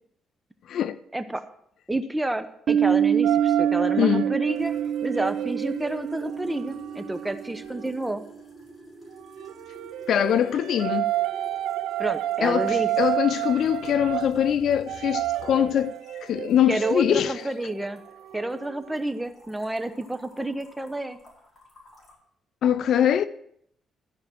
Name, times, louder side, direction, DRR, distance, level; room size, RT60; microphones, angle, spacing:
voice 1, 1.1-1.4 1.9-4.7 5.0-8.2 12.0-12.9 16.7-18.0 18.3-21.2, right 1 dB, 10° right, 0.9 m, -29 dB
Piano, 2.7-8.0, right 9 dB, 60° right, 0.7 m, -26 dB
sound 1, 3.2-8.0 9.2-19.0, right 14 dB, 85° right, 0.4 m, -31 dB
voice 2, 4.0-4.3 10.1-11.1 12.4-17.4 22.6-23.3, left 9 dB, 70° left, 0.5 m, -23 dB
sound 2, 4.5-22.1, left 1 dB, 30° left, 5.0 m, -51 dB
13.5 x 5.2 x 7.5 m
cardioid pair, 90°, 0 cm